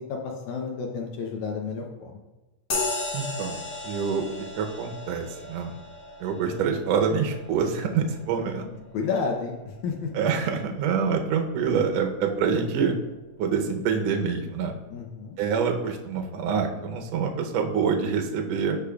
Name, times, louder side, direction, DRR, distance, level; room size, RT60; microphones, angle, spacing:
voice 1, 0.0-2.2 8.6-10.1 14.9-15.4, left 5 dB, 75° left, 1 dB, 1.9 m, -31 dB
sound 1, 2.7-10.6, left 3 dB, 50° left, 1.3 m, -36 dB
voice 2, 3.1-4.2 4.6-5.7 6.2-8.6 10.1-13.0 13.4-14.7 15.4-18.8, right 6 dB, 75° right, 4 dB, 1.6 m, -26 dB
13.5 x 5.0 x 2.3 m, 1.1 s
omnidirectional pair, 3.8 m